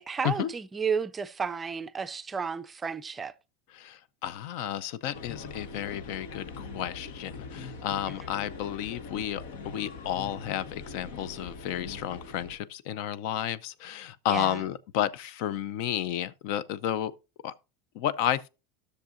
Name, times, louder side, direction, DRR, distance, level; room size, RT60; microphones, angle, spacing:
voice 1, 0.0-3.3 14.3-14.6, right 6 dB, 20° right, 0.4 m, -32 dB
voice 2, 3.7-17.1 17.4-17.5 17.9-18.5, left 11 dB, 65° left, 0.5 m, -32 dB
sound 1, 5.1-12.6, left 4 dB, 90° left, 1.1 m, -42 dB
13.0 x 6.5 x 2.5 m
supercardioid pair, 140°, 0 cm